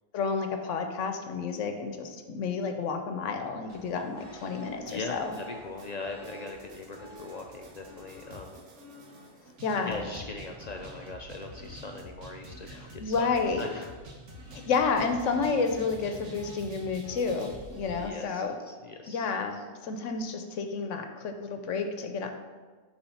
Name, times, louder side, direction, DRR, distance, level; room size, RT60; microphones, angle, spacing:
voice 1, 0.1-5.4 9.6-10.0 12.7-13.6 14.5-18.6 19.1-22.3, left 5 dB, 85° left, 6 dB, 1.0 m, -30 dB
sound 1, 3.7-18.1, equal, 85° right, 1.3 m, -47 dB
voice 2, 4.9-8.6 9.8-12.7 12.9-13.9 17.9-19.3, left 3 dB, 55° left, 3 dB, 0.4 m, -40 dB
7.1 x 3.3 x 5.6 m, 1.4 s
omnidirectional pair, 1.2 m